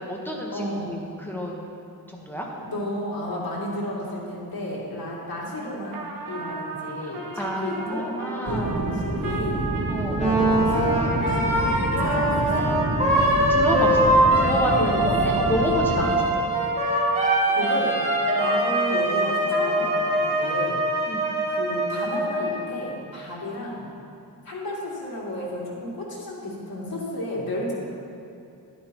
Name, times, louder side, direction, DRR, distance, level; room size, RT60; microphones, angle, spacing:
voice 1, 0.0-1.6 2.1-2.5 7.0-8.8 9.9-10.6 13.1-16.5 21.1-21.3, equal, 5° left, -2 dB, 1.1 m, -30 dB
voice 2, 0.5-1.0 2.6-8.2 8.4-9.7 10.3-11.4 12.0-12.7 14.8-15.4 16.0-16.3 17.2-18.0 18.3-20.8 21.5-23.9 24.4-27.7, left 1 dB, 75° left, -5 dB, 2.5 m, -32 dB
Trumpet, 5.9-19.0 19.5-22.0, right 3 dB, 70° right, 1.0 m, -34 dB
sound 1, 8.5-16.0, right 2 dB, 40° right, 0.9 m, -28 dB
Wind instrument woodwind instrument, 10.2-22.6, right 1 dB, 20° right, 2.0 m, -23 dB
12.0 x 11.0 x 3.0 m, 2.6 s
wide cardioid pair, 150°, 36 cm